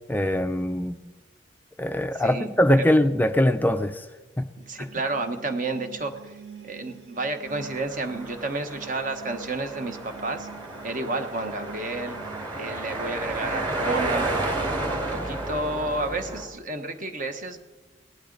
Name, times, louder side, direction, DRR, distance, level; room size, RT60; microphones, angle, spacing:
voice 1, 0.1-1.0 1.8-4.1 4.4-4.5 4.8-4.9, left 1 dB, 10° left, 8 dB, 0.4 m, -22 dB
voice 2, 2.2-2.5 2.7-2.8 4.7-6.4 6.6-10.5 10.8-12.1 12.5-14.4 14.9-17.6, right 2 dB, 45° right, 7 dB, 1.2 m, -31 dB
sound 1, 4.6-12.5, right 6 dB, 65° right, 0.9 m, -46 dB
sound 2, 7.5-16.4, right 2 dB, 25° right, 3.2 m, -32 dB
18.0 x 12.0 x 3.9 m, 1.1 s
head